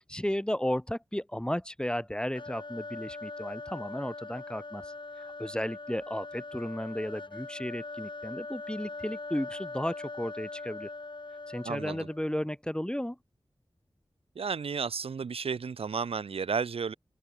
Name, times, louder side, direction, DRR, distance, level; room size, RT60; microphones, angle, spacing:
voice 1, 0.1-4.9 5.4-10.9 11.5-13.2, equal, 10° left, 2.2 m, -34 dB
sound 1, 2.3-12.3, left 3 dB, 55° left, 5.3 m, -42 dB
voice 2, 11.6-12.1 14.4-16.9, right 5 dB, 90° right, 0.5 m, -32 dB
wide cardioid pair, 60°, 10 cm